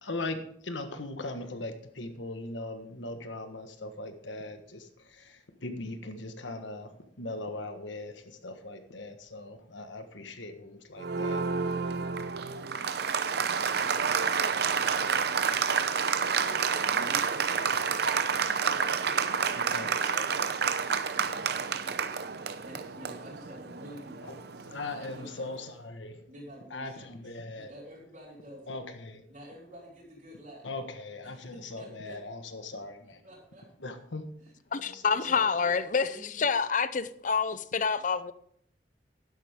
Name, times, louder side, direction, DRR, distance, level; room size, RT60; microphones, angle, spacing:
voice 1, 0.0-11.4 12.8-12.9 19.5-20.6 24.2-24.4 24.7-26.2 26.7-27.7 28.7-29.2 30.6-33.2 33.8-34.2 34.7-35.4, left 2 dB, 85° left, 1.4 m, -40 dB
Applause, 11.0-25.3, right 6 dB, 60° right, 0.7 m, -29 dB
voice 2, 16.4-19.7 22.6-25.4 26.3-27.1 27.6-28.8 29.3-30.8 31.2-32.2 33.2-33.7 34.4-34.5 35.2-35.7 36.1-36.6, equal, 45° right, 3.5 m, -49 dB
voice 3, 34.7-36.1 36.4-38.3, left 5 dB, 45° left, 0.6 m, -27 dB
12.0 x 11.0 x 3.6 m
head